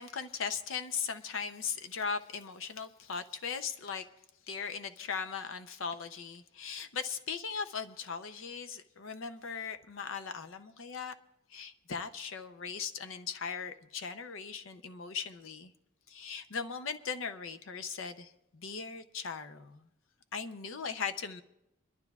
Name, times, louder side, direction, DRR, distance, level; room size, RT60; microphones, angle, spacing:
voice 1, 0.0-4.1 4.5-11.1 11.5-15.7 16.1-19.9 20.3-21.4, left 6 dB, 65° left, 8 dB, 0.6 m, -38 dB
27.5 x 12.0 x 2.4 m, 0.89 s
head